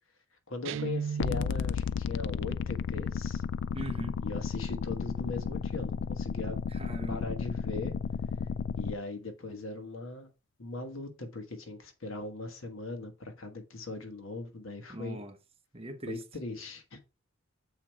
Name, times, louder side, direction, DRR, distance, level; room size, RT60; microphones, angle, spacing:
voice 1, 0.5-3.4 4.2-6.6 7.1-7.9 8.8-10.3 10.6-15.2 16.1-17.0, left 3 dB, 90° left, 1.4 m, -39 dB
Guitar, 0.6-1.8, right 7 dB, 65° right, 0.3 m, -35 dB
sound 1, 1.2-9.0, left 6 dB, 60° left, 0.3 m, -33 dB
voice 2, 3.7-4.1 6.7-7.2 14.9-15.4 15.7-16.2, right 1 dB, 30° right, 1.0 m, -40 dB
7.2 x 4.5 x 4.5 m
head